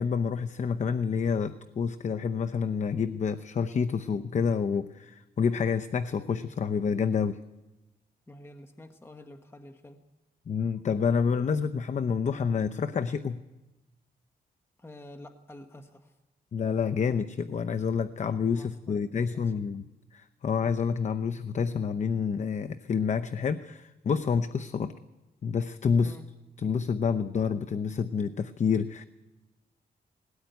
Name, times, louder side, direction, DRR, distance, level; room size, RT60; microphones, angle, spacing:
voice 1, 0.0-7.4 10.5-13.4 16.5-24.9 25.4-26.2 26.6-29.0, left 6 dB, 45° left, 10 dB, 0.7 m, -28 dB
voice 2, 8.3-10.0 14.8-16.2 18.5-19.5 26.0-26.2, left 1 dB, 15° left, 6 dB, 1.3 m, -48 dB
20.5 x 17.5 x 9.3 m, 1.0 s
cardioid pair, 90°, 16 cm